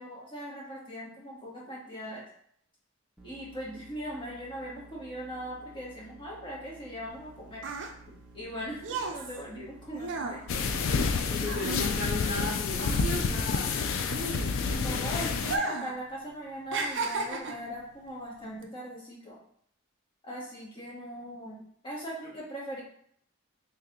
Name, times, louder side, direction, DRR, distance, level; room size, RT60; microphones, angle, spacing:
voice 1, 0.0-2.2 3.2-7.6 8.3-10.4 14.6-19.4 20.2-22.8, equal, 25° left, -5 dB, 1.2 m, -40 dB
sound 1, 3.2-15.3, right 2 dB, 5° right, 0.5 m, -54 dB
sound 2, 7.1-12.5 12.7-14.9 15.4-16.0 16.3-17.7 18.4-18.6, right 3 dB, 65° right, 0.5 m, -35 dB
sound 3, 10.5-15.6, left 5 dB, 75° left, 0.4 m, -29 dB
voice 2, 11.3-13.8, left 1 dB, 45° left, -4 dB, 1.4 m, -35 dB
3.2 x 2.9 x 3.6 m, 0.65 s
head